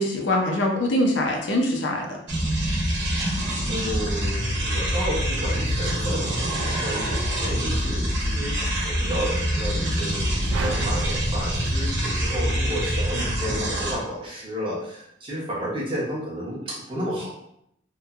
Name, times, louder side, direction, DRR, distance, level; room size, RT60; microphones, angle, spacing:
voice 1, 0.0-2.2, left 1 dB, 65° left, 1 dB, 0.5 m, -23 dB
sound 1, 2.3-13.9, equal, 65° right, 0.9 m, -25 dB
voice 2, 3.7-17.4, equal, 25° right, -4 dB, 0.6 m, -32 dB
sound 2, 10.5-12.9, right 1 dB, 80° right, 0.4 m, -30 dB
2.9 x 2.2 x 2.3 m, 0.74 s
head